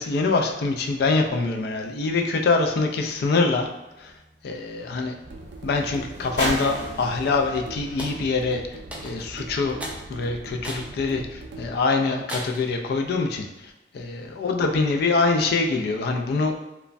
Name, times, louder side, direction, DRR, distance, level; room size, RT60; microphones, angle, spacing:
voice 1, 0.0-3.7 4.0-4.1 4.4-5.1 5.6-8.6 9.0-9.8 10.1-13.5 13.9-16.6, left 3 dB, 60° left, 3 dB, 0.3 m, -24 dB
sound 1, 3.5-9.4 10.2-10.3, equal, 85° left, 0.9 m, -37 dB
sound 2, 5.2-11.8, right 2 dB, 90° right, 0.4 m, -40 dB
sound 3, 8.0-8.2 8.9-9.3 9.8-10.0 10.6-10.9 11.4-11.5 12.3-12.7, equal, 10° right, 0.4 m, -35 dB
3.0 x 2.2 x 2.5 m, 0.99 s
head